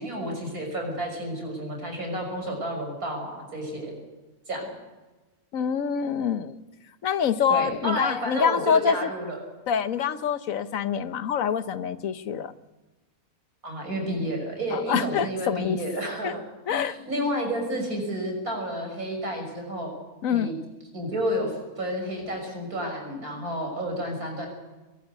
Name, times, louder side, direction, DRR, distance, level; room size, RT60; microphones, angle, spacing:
voice 1, 0.0-3.9 4.5-4.6 7.5-9.4 13.6-16.4 16.7-19.9 20.3-20.5 20.9-24.5, equal, 85° right, 2 dB, 6.7 m, -30 dB
voice 2, 5.5-6.6 7.0-9.1 9.7-12.5 14.7-15.8 16.2-16.3 16.7-17.0 20.2-20.5, left 7 dB, 70° left, 12 dB, 1.3 m, -25 dB
22.0 x 13.5 x 9.3 m, 1.1 s
omnidirectional pair, 1.5 m